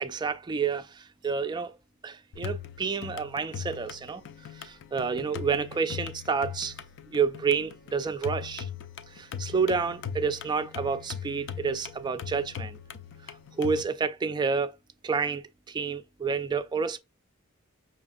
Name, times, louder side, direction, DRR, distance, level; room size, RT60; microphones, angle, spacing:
voice 1, 0.0-1.8 2.0-4.2 4.5-6.8 7.1-8.7 9.1-12.8 13.6-14.7 15.0-17.0, right 5 dB, 20° right, 0.3 m, -29 dB
sound 1, 2.3-13.8, left 8 dB, 55° left, 0.4 m, -40 dB
5.6 x 2.5 x 2.5 m
head